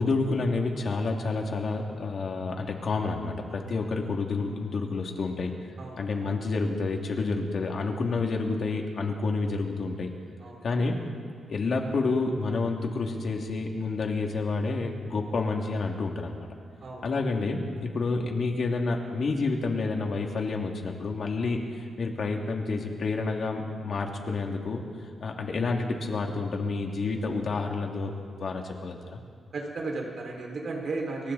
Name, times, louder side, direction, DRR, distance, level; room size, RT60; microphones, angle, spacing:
voice 1, 0.0-5.5 6.0-10.1 10.6-11.0 11.5-16.5 17.0-24.8 25.2-28.1 28.4-29.2, left 3 dB, 50° left, 1 dB, 2.7 m, -29 dB
voice 2, 5.8-6.3 10.4-10.6 16.8-17.1 29.5-31.3, right 3 dB, 50° right, -1 dB, 5.6 m, -34 dB
30.0 x 23.0 x 4.3 m, 2.1 s
wide cardioid pair, 135°, 0 cm